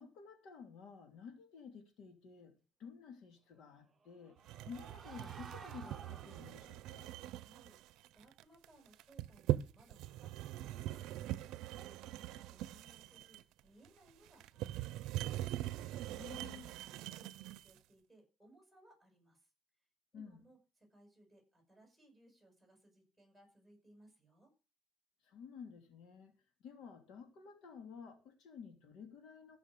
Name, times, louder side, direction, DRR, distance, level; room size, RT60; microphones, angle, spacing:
voice 1, 0.0-2.5 2.8-4.4 4.6-7.1 16.1-16.7 20.1-20.4 25.2-26.3 26.6-29.6, left 6 dB, 75° left, 2.8 m, -52 dB
sound 1, 3.9-6.9, right 5 dB, 25° right, 1.0 m, -54 dB
sound 2, 4.5-17.8, right 14 dB, 85° right, 0.6 m, -42 dB
voice 2, 7.3-7.8 8.1-11.3 11.7-15.4 16.3-19.5 20.1-24.5, right 1 dB, ahead, 7.5 m, -65 dB
16.0 x 6.3 x 6.6 m
cardioid pair, 130°, 0 cm